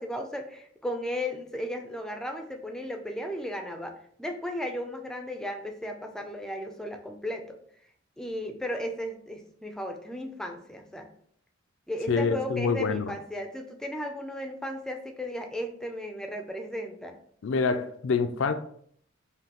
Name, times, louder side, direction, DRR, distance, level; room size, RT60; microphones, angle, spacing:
voice 1, 0.0-3.9 4.2-7.6 8.2-11.1 11.9-17.1, equal, 5° left, 0.4 m, -35 dB
voice 2, 12.1-13.1 17.4-18.5, left 4 dB, 70° left, 0.4 m, -26 dB
5.1 x 2.7 x 2.9 m
head